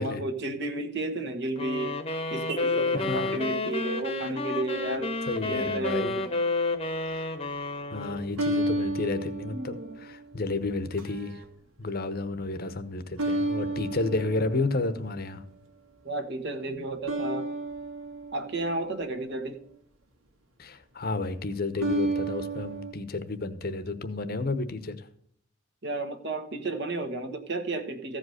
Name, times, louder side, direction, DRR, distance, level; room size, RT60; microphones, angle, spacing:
voice 1, 0.0-2.0 2.3-5.1 5.4-6.3 9.5-10.0 16.0-17.5 18.3-19.6 25.8-28.2, right 2 dB, 55° right, 7 dB, 1.4 m, -32 dB
sound 1, 1.6-8.4, left 3 dB, 30° left, 1.0 m, -30 dB
voice 2, 2.9-3.4 5.3-6.1 7.1-7.2 7.9-11.4 11.8-15.4 20.6-25.1, left 3 dB, 45° left, 11 dB, 1.0 m, -31 dB
sound 2, 4.6-5.4 8.4-10.4 11.0-11.4 13.2-15.1 17.1-19.5 21.8-22.9, right 2 dB, 85° right, 2.0 m, -32 dB
15.0 x 5.1 x 6.4 m, 0.65 s
head